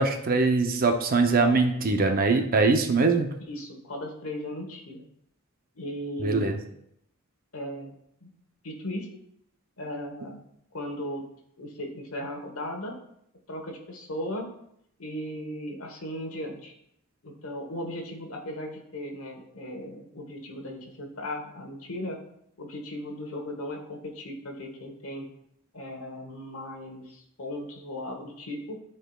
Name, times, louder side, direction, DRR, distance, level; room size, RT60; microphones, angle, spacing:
voice 1, 0.0-3.4 6.2-6.5, right 3 dB, 40° right, 5 dB, 0.6 m, -22 dB
voice 2, 3.5-5.0 5.7-6.6 7.5-8.3 8.6-9.1 9.8-10.4 10.7-11.2 11.6-13.0 13.5-14.5 15.0-16.7 17.2-22.2 22.6-25.3 25.7-28.8, left 1 dB, 65° left, 3 dB, 1.2 m, -37 dB
11.0 x 4.5 x 2.3 m, 0.74 s
head